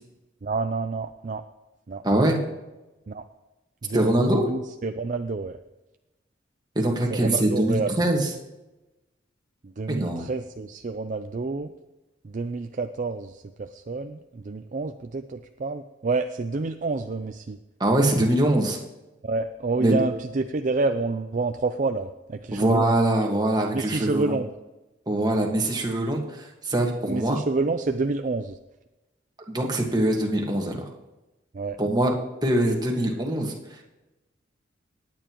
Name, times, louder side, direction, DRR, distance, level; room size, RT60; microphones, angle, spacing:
voice 1, 0.4-1.4 1.9-2.0 3.1-3.2 3.8-5.6 7.1-7.9 9.6-11.7 12.2-17.6 19.2-22.9 23.7-24.5 27.1-28.6 31.5-31.8, right 3 dB, 40° right, 7 dB, 0.4 m, -28 dB
voice 2, 2.0-2.4 3.9-4.4 6.8-8.3 9.9-10.3 17.8-18.8 19.8-20.0 22.5-24.4 25.1-27.4 29.5-30.9 31.8-32.1 32.4-33.5, right 1 dB, 20° right, 0 dB, 1.6 m, -23 dB
18.5 x 9.0 x 3.0 m, 1.0 s
head